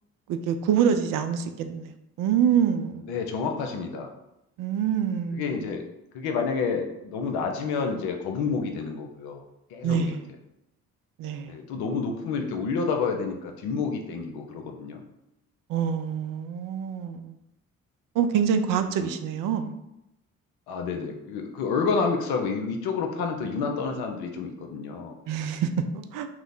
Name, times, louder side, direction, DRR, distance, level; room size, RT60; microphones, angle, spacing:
voice 1, 0.3-3.1 4.6-5.8 9.8-10.2 11.2-11.5 15.7-17.4 18.2-19.7 25.3-26.3, right 8 dB, 55° right, 8 dB, 0.5 m, -26 dB
voice 2, 3.1-4.1 5.3-5.9 6.1-9.4 9.7-10.2 11.5-15.0 18.8-19.1 20.7-25.2, left 5 dB, 70° left, 3 dB, 0.7 m, -29 dB
3.0 x 2.0 x 3.9 m, 0.86 s
hypercardioid pair, 40°, 39 cm